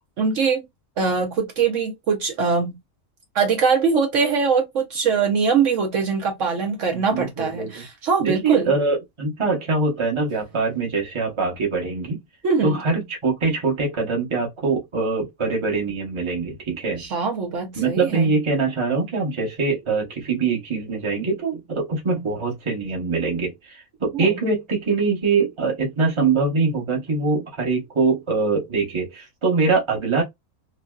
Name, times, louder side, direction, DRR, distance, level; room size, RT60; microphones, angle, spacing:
voice 1, 0.2-0.6 1.0-2.8 3.3-8.7 12.4-12.8 17.0-18.3 24.1-24.4, right 5 dB, 65° right, 1.0 m, -22 dB
voice 2, 6.9-7.8 8.2-12.2 12.6-17.0 17.8-30.2, right 4 dB, 25° right, 0.9 m, -23 dB
3.1 x 2.6 x 2.3 m
omnidirectional pair, 1.5 m